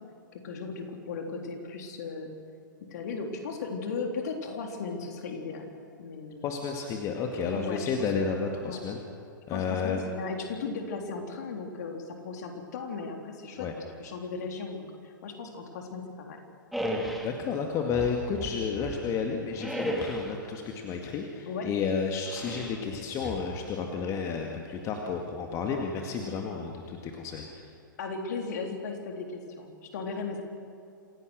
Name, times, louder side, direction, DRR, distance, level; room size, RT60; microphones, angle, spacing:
voice 1, 0.3-2.3 2.8-6.6 7.5-8.1 8.6-8.8 9.5-16.4 21.5-21.7 28.0-30.4, left 4 dB, 55° left, 3 dB, 3.7 m, -36 dB
voice 2, 6.4-9.0 9.5-10.0 13.6-13.7 17.2-27.7, left 5 dB, 30° left, 2 dB, 2.1 m, -31 dB
sound 1, 16.7-17.4 17.9-19.1 19.6-20.4 22.3-22.8 23.2-23.9, equal, ahead, 2.7 m, -34 dB
27.0 x 16.5 x 6.5 m, 2.5 s
figure-of-eight pair, 110°, 11 cm